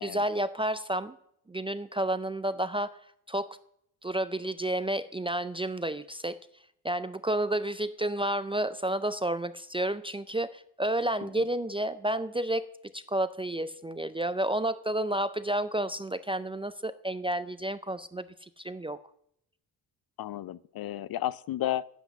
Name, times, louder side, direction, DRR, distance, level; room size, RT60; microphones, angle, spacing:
voice 1, 0.0-1.2 1.5-3.0 3.3-3.6 4.0-6.4 6.8-19.0, right 1 dB, 15° right, 13 dB, 0.3 m, -31 dB
voice 2, 20.2-21.8, left 13 dB, 60° left, 19 dB, 0.5 m, -33 dB
9.9 x 8.2 x 7.0 m, 0.71 s
cardioid pair, 115°, 42 cm